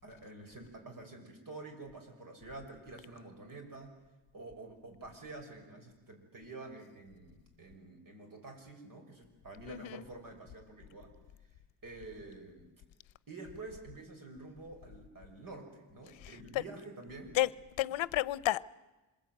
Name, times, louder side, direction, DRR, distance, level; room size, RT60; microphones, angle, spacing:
voice 1, 0.0-4.0 4.3-11.1 11.8-12.7 13.3-17.4, right 2 dB, 45° right, 5.9 m, -48 dB
voice 2, 9.7-10.0 17.4-17.5 17.8-18.7, left 14 dB, 75° left, 0.8 m, -31 dB
26.5 x 21.5 x 9.3 m
wide cardioid pair, 140°, 47 cm